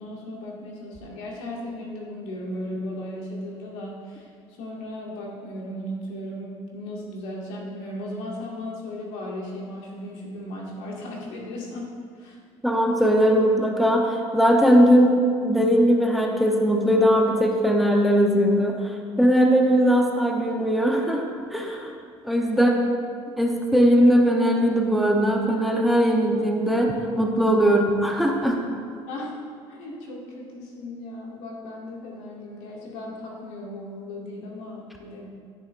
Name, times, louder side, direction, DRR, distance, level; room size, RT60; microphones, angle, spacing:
voice 1, 0.0-12.4 22.5-22.9 27.7-27.8 29.1-29.4 29.7-35.3, left 1 dB, 90° left, -3 dB, 2.0 m, -36 dB
voice 2, 12.6-21.2 21.5-21.9 22.2-22.7 23.4-28.6, equal, ahead, 0 dB, 0.8 m, -20 dB
13.0 x 6.9 x 2.6 m, 2.3 s
cardioid pair, 125°, 12 cm